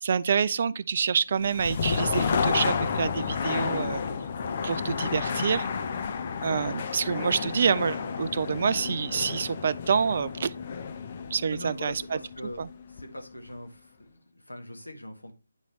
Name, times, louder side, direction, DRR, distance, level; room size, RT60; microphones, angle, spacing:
voice 1, 0.0-4.0 4.6-5.7 6.4-10.5 11.3-12.2 12.6-12.7, right 6 dB, 40° right, 0.3 m, -27 dB
sound 1, 1.4-13.2, left 6 dB, 35° left, 0.5 m, -31 dB
voice 2, 11.5-12.6 12.9-15.3, left 1 dB, 75° left, 1.7 m, -41 dB
8.9 x 3.8 x 3.1 m
figure-of-eight pair, 150°, 0 cm